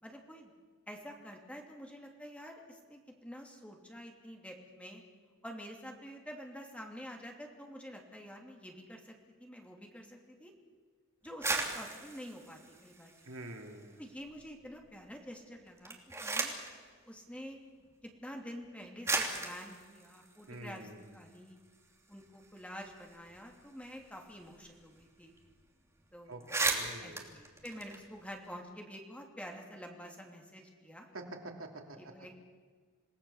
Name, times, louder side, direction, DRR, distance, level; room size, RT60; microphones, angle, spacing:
voice 1, 0.0-0.5 0.9-5.0 5.4-10.5 11.2-13.1 14.0-16.5 17.0-17.6 18.0-21.6 22.1-25.3 26.1-26.6 27.0-31.1 32.0-32.3, equal, 5° left, 1 dB, 2.9 m, -48 dB
sound 1, 11.2-13.8 14.2-14.9 15.7-16.8 17.8-17.9 18.6-18.7 19.0-21.4 21.7-21.8 22.1-24.7 24.9-25.1 25.4-25.6 26.0-26.1 26.3-28.5, right 3 dB, 15° right, 2.9 m, -37 dB
voice 2, 13.2-14.0 20.5-21.4 26.3-27.4 31.1-32.0, right 1 dB, 70° right, 3 dB, 3.0 m, -47 dB
27.5 x 19.0 x 7.2 m, 1.5 s
head